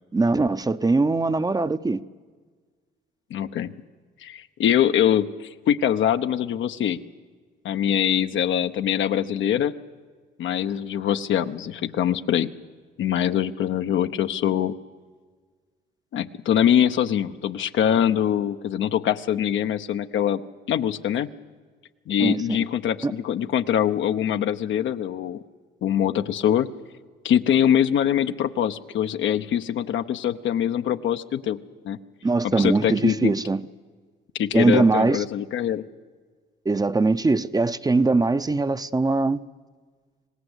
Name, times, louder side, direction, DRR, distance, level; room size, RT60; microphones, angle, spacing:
voice 1, 0.1-2.0 22.2-22.6 23.0-23.1 32.2-33.6 34.5-35.2 36.7-39.4, right 3 dB, 20° right, 0.7 m, -21 dB
voice 2, 3.3-3.7 4.2-7.0 7.6-9.7 10.4-12.5 13.0-14.8 16.1-20.4 20.7-21.3 22.1-25.4 25.8-26.7 27.2-31.6 31.8-32.0 32.4-33.3 34.3-35.8, left 10 dB, 75° left, 0.9 m, -23 dB
26.0 x 18.5 x 8.1 m
cardioid pair, 90°, 20 cm